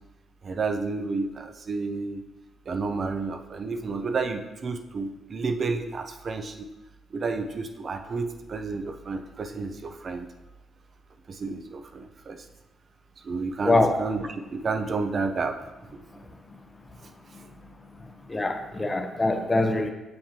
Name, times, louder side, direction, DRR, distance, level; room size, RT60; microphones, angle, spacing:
voice 1, 0.4-2.2 2.7-6.7 7.1-10.3 11.3-12.5 13.2-15.6 15.9-16.0, right 4 dB, 45° right, 7 dB, 0.7 m, -31 dB
voice 2, 13.6-14.0 18.3-19.9, left 2 dB, 20° left, 5 dB, 0.9 m, -23 dB
7.7 x 7.3 x 2.9 m, 1.0 s
cardioid pair, 90°, 0 cm